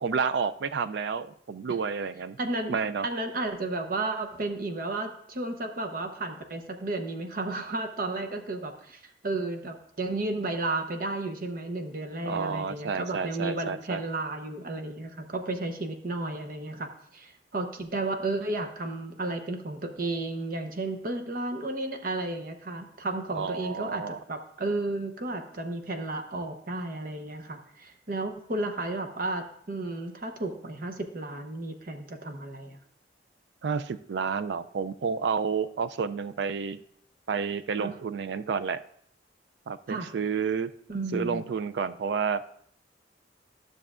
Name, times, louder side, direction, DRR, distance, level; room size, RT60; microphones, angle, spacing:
voice 1, 0.0-2.4 2.7-3.1 12.2-14.0 23.3-24.2 33.6-36.8 37.3-38.8 39.7-40.7 41.1-42.4, right 5 dB, 65° right, 13 dB, 0.3 m, -30 dB
voice 2, 2.4-2.8 3.0-32.8 37.8-37.9 39.9-40.1 40.9-41.4, right 2 dB, 50° right, 6 dB, 0.8 m, -33 dB
12.5 x 6.6 x 2.4 m, 0.66 s
head